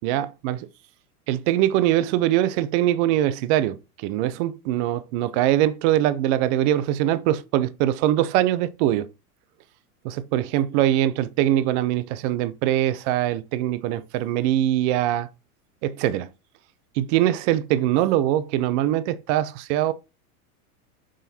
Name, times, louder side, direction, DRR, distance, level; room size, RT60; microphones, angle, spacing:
voice 1, 0.0-0.6 1.3-9.1 10.0-15.3 15.8-16.3 17.0-19.9, right 13 dB, 50° right, 0.8 m, -22 dB
6.3 x 4.0 x 4.2 m
hypercardioid pair, 115°, 45 cm